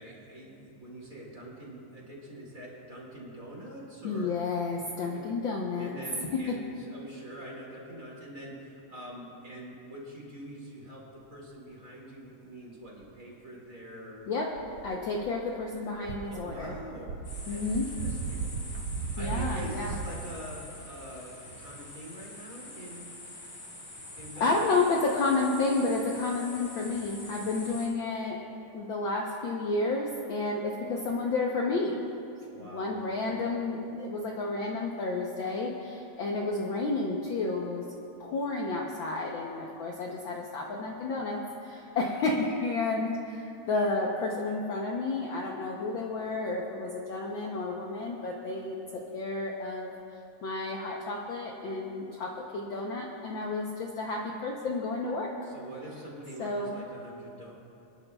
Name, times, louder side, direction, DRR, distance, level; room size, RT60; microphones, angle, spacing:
voice 1, 0.0-4.3 5.0-5.2 5.8-11.0 11.3-14.2 16.3-17.2 17.5-18.5 19.2-23.1 24.2-24.5 32.5-33.4 55.4-57.5, right 1 dB, 30° right, -4 dB, 2.6 m, -44 dB
voice 2, 4.0-5.9 6.5-6.6 14.3-14.5 14.8-16.7 17.5-17.9 19.2-20.0 24.4-28.4 28.7-32.0 32.5-37.9 38.2-49.9 50.4-55.3 56.4-56.7, left 3 dB, 80° left, -1 dB, 1.0 m, -31 dB
sound 1, 14.5-15.6 16.0-20.2, right 5 dB, 80° right, 1.3 m, -36 dB
sound 2, 17.2-27.9, left 2 dB, 60° left, 4.5 m, -45 dB
26.5 x 11.0 x 2.3 m, 2.7 s
omnidirectional pair, 3.3 m